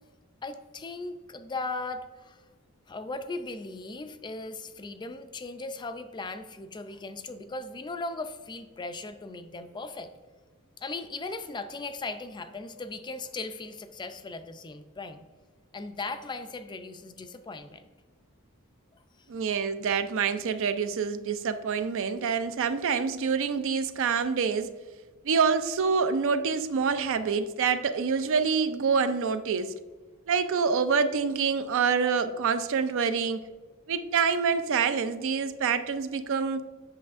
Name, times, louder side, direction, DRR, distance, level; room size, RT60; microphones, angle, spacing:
voice 1, 0.4-2.4 2.9-10.1 10.8-15.2 15.7-17.9, left 3 dB, 20° left, 0.3 m, -38 dB
voice 2, 19.3-24.7 25.2-29.7 30.3-33.4 33.9-36.6, right 5 dB, 65° right, 0.4 m, -26 dB
8.3 x 6.2 x 2.5 m
head